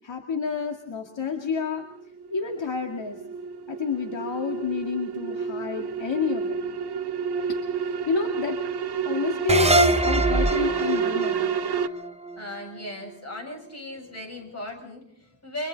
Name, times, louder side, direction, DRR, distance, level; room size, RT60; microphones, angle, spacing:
voice 1, 0.0-1.9 2.3-3.2 3.7-6.6 7.5-8.6 9.1-11.5, left 5 dB, 65° left, 3 dB, 2.3 m, -29 dB
sound 1, 1.4-11.9, right 6 dB, 55° right, 1.2 m, -30 dB
sound 2, 9.5-12.8, right 2 dB, 15° right, 0.8 m, -24 dB
voice 2, 12.4-15.7, left 1 dB, 30° left, 2 dB, 7.2 m, -37 dB
30.0 x 25.5 x 4.0 m, 0.63 s
wide cardioid pair, 145°, 48 cm